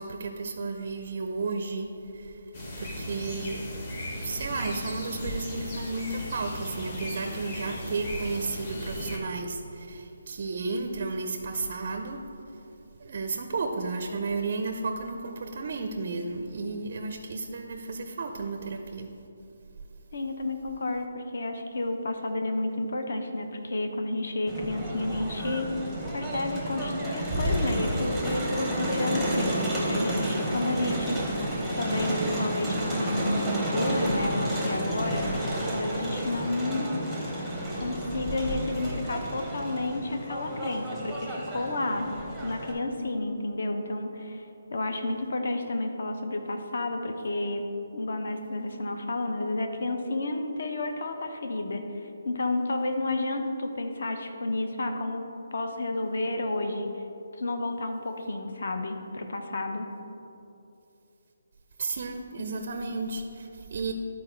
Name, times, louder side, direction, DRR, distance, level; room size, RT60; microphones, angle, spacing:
voice 1, 0.0-2.4 2.8-3.6 4.2-12.2 13.0-19.1 61.8-63.9, right 3 dB, 35° right, 4 dB, 0.4 m, -33 dB
sound 1, 2.5-9.2, left 1 dB, 25° left, 0.9 m, -36 dB
voice 2, 20.1-25.8 26.1-31.2 31.8-35.3 35.7-36.9 37.8-42.1 42.4-47.7 47.9-56.9 57.4-59.9, left 2 dB, 55° left, 5 dB, 0.8 m, -31 dB
Crowd, 24.5-42.7, right 1 dB, ahead, 0.7 m, -31 dB
11.0 x 4.2 x 4.4 m, 2.8 s
hypercardioid pair, 175°, 0 cm